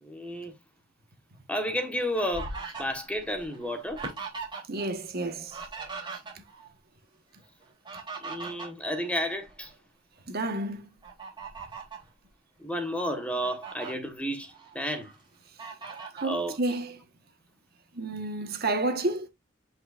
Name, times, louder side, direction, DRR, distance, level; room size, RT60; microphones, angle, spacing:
voice 1, 0.0-0.5 1.5-2.5 2.8-4.0 8.2-9.7 12.6-15.1 16.2-16.6, equal, 5° left, 1.4 m, -32 dB
Fowl, 1.6-4.9 5.2-6.7 7.6-9.7 10.2-10.4 11.0-12.1 12.7-12.8 13.1-13.9 14.5-15.1 15.6-16.3, right 4 dB, 25° right, 3.5 m, -40 dB
voice 2, 4.7-5.6 10.3-10.9 16.1-16.9 17.9-19.3, right 2 dB, 50° right, 1.5 m, -30 dB
8.9 x 5.6 x 2.6 m
head